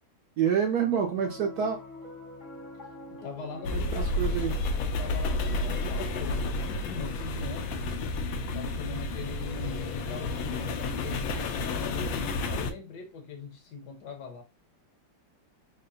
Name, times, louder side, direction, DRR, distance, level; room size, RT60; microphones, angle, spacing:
voice 1, 0.4-1.8 3.7-4.6, right 8 dB, 70° right, 0.9 m, -27 dB
Piano, 0.8-11.3, left 1 dB, 35° left, 0.7 m, -49 dB
voice 2, 3.1-4.1 4.8-7.9 8.4-14.4, left 5 dB, 65° left, 1.2 m, -41 dB
sound 1, 3.6-12.7, left 2 dB, 90° left, 1.4 m, -31 dB
3.7 x 2.1 x 3.8 m
omnidirectional pair, 2.1 m